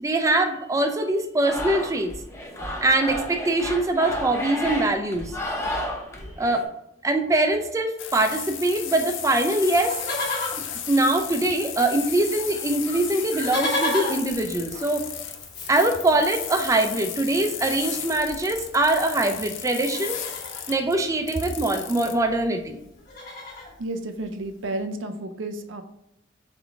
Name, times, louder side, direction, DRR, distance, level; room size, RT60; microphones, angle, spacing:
voice 1, 0.0-2.1 2.8-5.3 6.4-6.7 7.0-10.0 10.9-15.0 15.7-20.2 20.7-22.8, right 2 dB, 15° right, 5 dB, 0.4 m, -23 dB
sound 1, 1.4-6.7, left 1 dB, 15° left, 0.7 m, -32 dB
sound 2, 8.0-22.2, left 9 dB, 70° left, 0.5 m, -35 dB
Livestock farm animals working animals, 9.8-11.8 12.0-12.1 12.4-19.3 19.7-20.7 21.9-22.0 22.1-22.4 22.8-23.7 24.3-24.4, left 1 dB, 55° left, 1.3 m, -34 dB
voice 2, 23.8-25.8, right 2 dB, 75° right, 7 dB, 0.5 m, -31 dB
3.7 x 3.5 x 3.5 m, 0.83 s
head